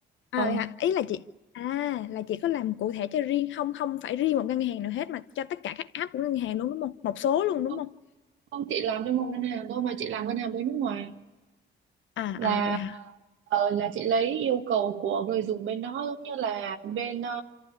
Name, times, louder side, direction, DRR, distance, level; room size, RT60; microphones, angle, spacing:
voice 1, 0.3-1.2 1.5-7.9 12.2-12.9, left 11 dB, 70° left, 0.8 m, -29 dB
voice 2, 8.5-11.1 12.4-13.1 13.5-17.4, right 8 dB, 80° right, 1.6 m, -29 dB
26.0 x 14.0 x 9.7 m
cardioid pair, 90°, 20 cm